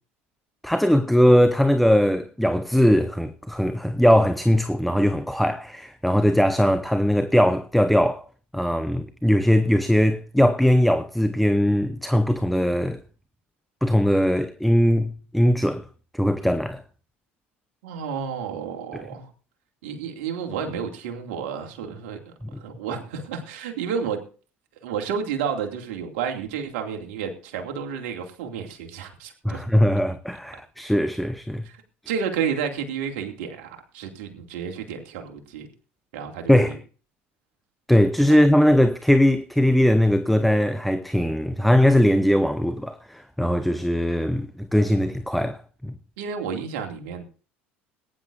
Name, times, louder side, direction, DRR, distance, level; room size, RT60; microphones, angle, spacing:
voice 1, 0.6-8.2 8.5-13.0 13.8-15.9 16.1-16.8 18.9-19.0 22.4-22.5 29.4-31.6 36.5-36.8 37.9-45.9, equal, ahead, 0.8 m, -20 dB
voice 2, 17.8-19.3 19.8-22.2 22.6-24.2 24.8-29.6 31.6-31.8 32.1-35.7 36.1-36.7 38.3-38.4 46.2-47.2, right 7 dB, 70° right, 2.5 m, -31 dB
21.0 x 10.0 x 2.6 m
hypercardioid pair, 70°, 6 cm